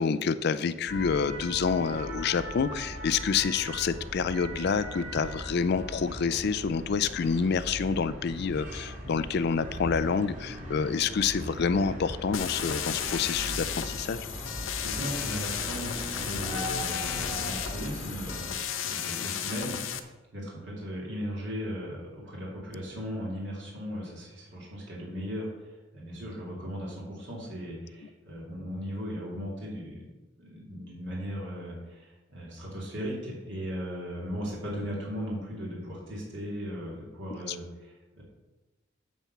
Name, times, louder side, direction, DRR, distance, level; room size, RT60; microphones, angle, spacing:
voice 1, 0.0-14.2 19.1-19.3 37.3-37.6, left 5 dB, 55° left, 14 dB, 0.4 m, -28 dB
sound 1, 0.9-18.5, equal, 40° right, 3.0 m, -39 dB
sound 2, 12.3-20.0, left 9 dB, 90° left, 0.7 m, -34 dB
voice 2, 14.8-18.5 18.8-30.0 30.4-38.2, equal, 65° right, -4 dB, 2.8 m, -37 dB
9.1 x 4.3 x 7.1 m, 1.1 s
head